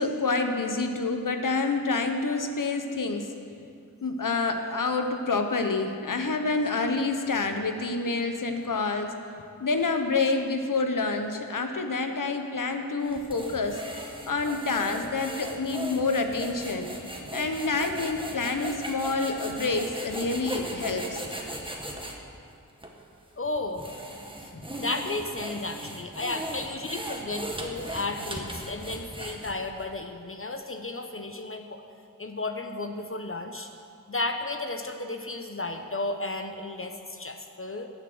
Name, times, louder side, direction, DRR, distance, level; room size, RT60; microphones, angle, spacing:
voice 1, 0.0-3.3 4.0-9.1 9.6-13.8 14.3-16.9 17.3-21.2, left 3 dB, 70° left, 6 dB, 1.1 m, -28 dB
sound 1, 13.0-22.2 22.8-22.9 23.5-29.8, right 1 dB, 15° right, 1.6 m, -38 dB
voice 2, 23.4-23.9 24.5-31.8 32.2-33.7 34.1-37.9, left 2 dB, 40° left, 6 dB, 0.8 m, -33 dB
14.5 x 6.9 x 6.3 m, 2.4 s
cardioid pair, 45°, 34 cm